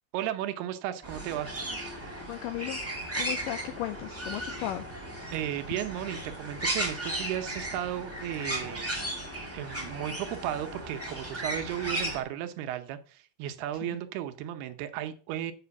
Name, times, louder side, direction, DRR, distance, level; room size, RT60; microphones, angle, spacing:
voice 1, 0.1-1.5 5.3-8.9 9.5-15.5, right 11 dB, 85° right, 9 dB, 2.8 m, -34 dB
sound 1, 1.0-12.2, right 1 dB, 5° right, 1.1 m, -36 dB
voice 2, 2.3-2.8 3.2-4.8 13.8-14.0, left 13 dB, 85° left, 9 dB, 1.9 m, -35 dB
7.4 x 6.1 x 6.9 m, 0.40 s
omnidirectional pair, 4.5 m